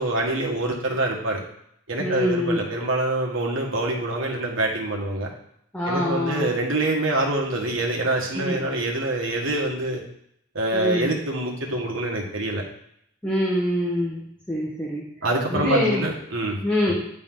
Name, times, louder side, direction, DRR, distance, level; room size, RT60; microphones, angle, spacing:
voice 1, 0.0-1.4 1.9-5.3 5.9-10.0 10.5-12.6 15.2-16.9, right 2 dB, 75° right, 0 dB, 1.5 m, -25 dB
voice 2, 2.0-2.6 5.7-6.5 8.3-8.6 10.7-11.1 13.2-14.2 14.5-15.0 15.5-16.0 16.6-16.9, equal, 5° left, -6 dB, 1.2 m, -24 dB
8.8 x 4.0 x 3.8 m, 0.73 s
head